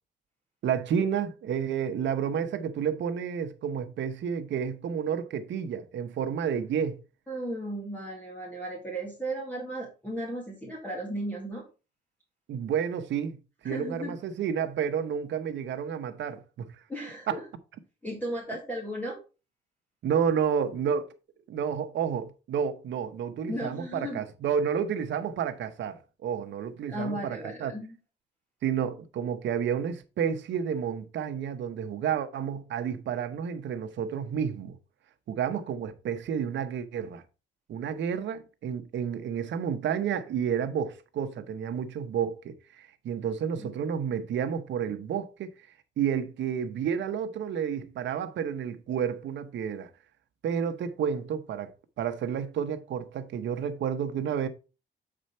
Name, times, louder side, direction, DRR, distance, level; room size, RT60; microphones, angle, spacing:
voice 1, 0.6-7.0 12.5-16.7 17.3-17.4 20.0-21.1 21.5-27.7 28.6-34.8 35.3-37.2 37.7-45.5 46.0-49.9 50.4-51.7 52.0-54.5, right 8 dB, 70° right, 1.1 m, -30 dB
voice 2, 7.3-11.7 13.6-14.1 16.9-17.4 18.0-19.2 23.5-24.2 26.9-28.0 43.6-43.7, right 1 dB, 10° left, 1.9 m, -35 dB
7.7 x 5.0 x 4.4 m
cardioid pair, 110°, 20 cm